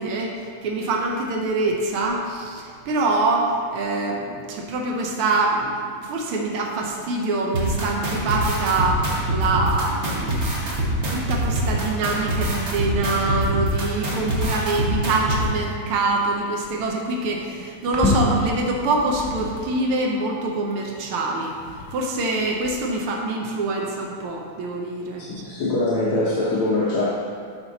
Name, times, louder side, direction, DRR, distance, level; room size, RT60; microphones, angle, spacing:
voice 1, 0.0-21.5 21.9-25.4, right 2 dB, 90° right, -1 dB, 1.8 m, -25 dB
sound 1, 4.8-5.1 6.9-8.7 9.6-9.7 10.4-12.1 12.6-13.2 13.9-19.9 20.7-22.8, left 1 dB, 20° left, 0.6 m, -32 dB
sound 2, 7.5-15.4, right 1 dB, 40° right, 1.2 m, -24 dB
voice 2, 25.2-27.1, left 2 dB, 80° left, -6 dB, 1.8 m, -23 dB
12.0 x 4.4 x 4.0 m, 2.1 s
omnidirectional pair, 2.3 m